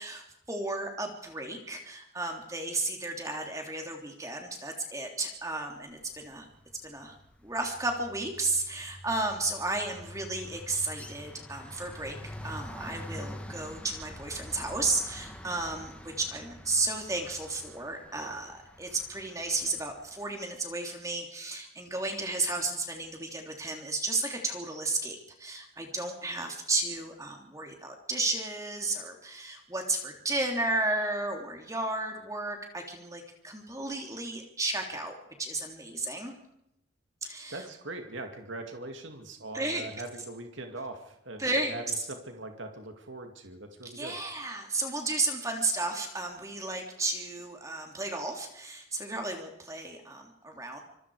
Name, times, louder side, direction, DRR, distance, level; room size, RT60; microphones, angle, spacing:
voice 1, 0.0-6.5 6.8-7.1 7.4-12.2 12.4-36.3 37.2-37.6 39.5-39.9 41.4-41.7 43.9-50.8, right 2 dB, 15° right, 2 dB, 3.2 m, -33 dB
sound 1, 6.3-6.7 7.0-20.1, left 1 dB, 5° left, 2.1 m, -46 dB
voice 2, 37.5-44.2, right 2 dB, 70° right, 5 dB, 2.3 m, -41 dB
26.5 x 22.5 x 4.9 m, 0.80 s
head